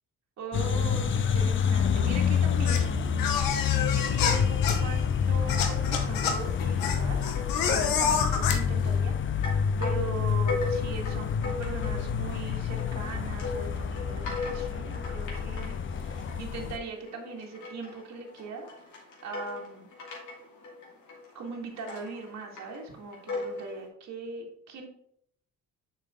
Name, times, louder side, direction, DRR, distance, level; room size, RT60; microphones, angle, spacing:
voice 1, 0.4-3.0 3.6-7.2 7.6-9.1 9.4-18.7 19.2-19.9 21.3-24.9, right 3 dB, 55° right, 0 dB, 1.9 m, -40 dB
sound 1, 0.5-16.8, left 7 dB, 35° left, 0.6 m, -28 dB
sound 2, 2.7-8.9, left 6 dB, 85° left, 1.0 m, -29 dB
sound 3, 7.3-8.1 8.4-9.1 9.4-23.9, left 3 dB, 60° left, 2.6 m, -39 dB
6.7 x 5.6 x 3.6 m, 0.70 s
cardioid pair, 110°, 34 cm